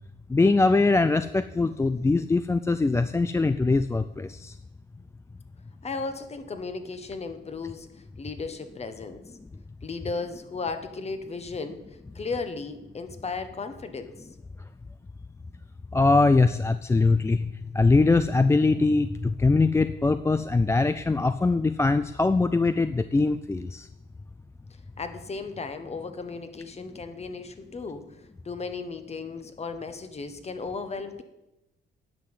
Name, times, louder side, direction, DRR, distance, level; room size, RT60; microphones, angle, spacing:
voice 1, 0.3-4.5 15.9-17.5 17.7-23.9, left 3 dB, 15° left, 11 dB, 0.4 m, -22 dB
voice 2, 5.8-7.9 8.2-9.2 9.8-11.8 12.1-14.3 25.0-31.2, left 4 dB, 30° left, 8 dB, 1.3 m, -35 dB
10.5 x 5.8 x 8.0 m, 0.94 s
cardioid pair, 90°, 20 cm